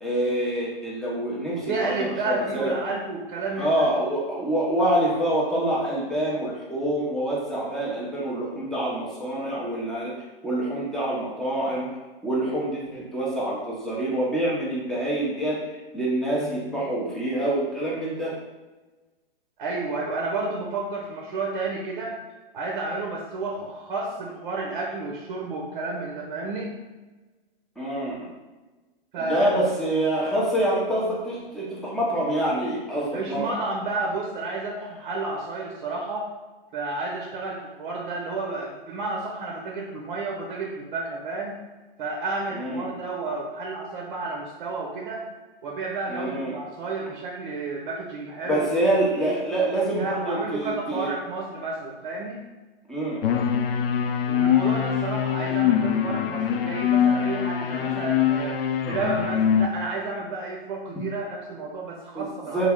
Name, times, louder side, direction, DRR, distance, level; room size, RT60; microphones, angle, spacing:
voice 1, 0.0-2.8 3.6-10.1 10.4-12.0 12.2-15.6 15.9-18.3 27.8-28.2 29.2-33.6 42.5-42.9 46.1-46.6 48.4-51.1 52.9-53.2 60.9-61.0 62.1-62.7, right 1 dB, ahead, -6 dB, 0.5 m, -26 dB
voice 2, 1.5-3.7 19.6-22.2 22.5-26.8 29.1-29.5 33.1-36.3 36.7-41.6 42.0-45.2 45.6-48.6 49.2-49.4 50.0-52.4 54.3-62.7, right 3 dB, 55° right, -1 dB, 0.6 m, -31 dB
sound 1, 53.2-59.7, left 8 dB, 70° left, 0.4 m, -23 dB
3.2 x 2.3 x 3.4 m, 1.2 s
hypercardioid pair, 130°, 30 cm